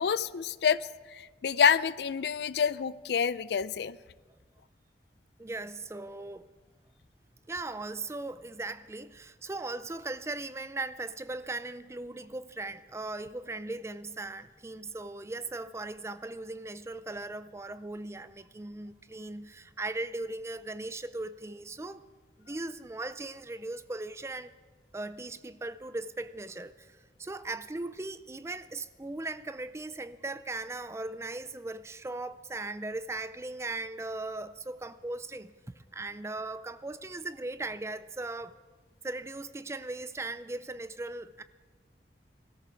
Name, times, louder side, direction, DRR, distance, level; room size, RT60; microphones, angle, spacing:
voice 1, 0.0-4.0, left 7 dB, 70° left, 0.4 m, -28 dB
voice 2, 5.4-6.5 7.5-22.0 22.4-24.5 24.9-38.5 39.0-41.4, right 2 dB, 15° right, 0.4 m, -38 dB
21.5 x 13.5 x 4.5 m
head